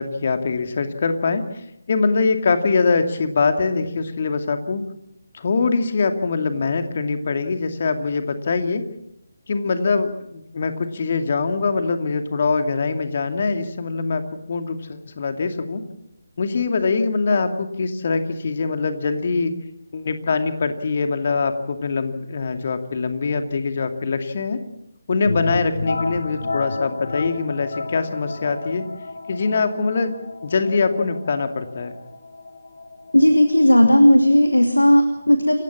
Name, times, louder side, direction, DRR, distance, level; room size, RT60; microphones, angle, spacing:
voice 1, 0.0-1.4 1.9-4.8 5.3-8.8 9.5-15.8 16.4-19.5 19.9-24.6 25.1-28.9 29.3-30.1 30.4-31.9, left 4 dB, 45° left, 7 dB, 2.4 m, -23 dB
sound 1, 25.2-34.8, left 3 dB, 60° left, 3.9 m, -32 dB
voice 2, 33.1-35.6, equal, 85° left, 6 dB, 2.6 m, -15 dB
28.5 x 16.0 x 7.4 m, 0.84 s
figure-of-eight pair, 150°, 0 cm